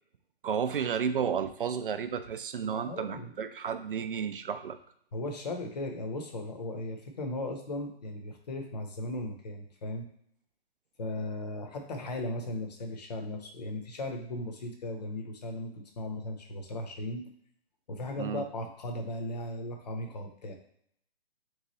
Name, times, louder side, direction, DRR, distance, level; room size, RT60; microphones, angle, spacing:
voice 1, 0.4-4.8 18.2-18.4, right 7 dB, 55° right, 10 dB, 0.5 m, -32 dB
voice 2, 2.6-3.3 5.1-10.1 11.0-17.2 17.9-20.5, left 1 dB, 40° left, 4 dB, 0.8 m, -37 dB
3.6 x 3.2 x 4.0 m, 0.68 s
hypercardioid pair, 165°, 32 cm